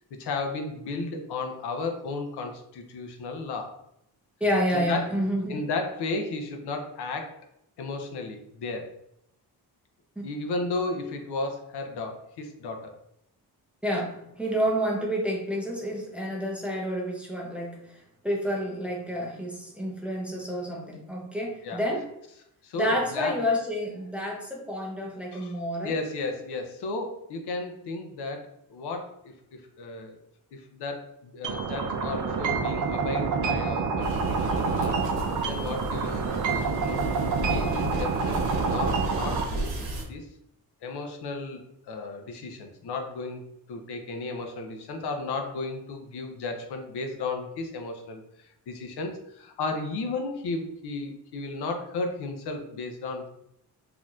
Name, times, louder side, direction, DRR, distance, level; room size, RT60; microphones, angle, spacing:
voice 1, 0.2-3.8 4.7-5.2 5.5-7.4 7.8-8.9 10.2-13.0 21.6-21.8 22.6-23.4 25.3-25.6 25.8-30.2 30.5-35.1 35.4-37.0 37.5-40.3 40.8-43.4 43.7-53.3, left 3 dB, 85° left, 4 dB, 0.7 m, -34 dB
voice 2, 4.4-5.6 10.2-10.3 13.8-22.1 22.7-25.9, equal, 5° right, -2 dB, 0.5 m, -29 dB
sound 1, 31.4-39.4, right 5 dB, 55° right, 0.5 m, -27 dB
sound 2, 34.0-40.0, right 1 dB, 70° right, 1.0 m, -34 dB
4.2 x 2.8 x 2.4 m, 0.79 s
wide cardioid pair, 170°, 38 cm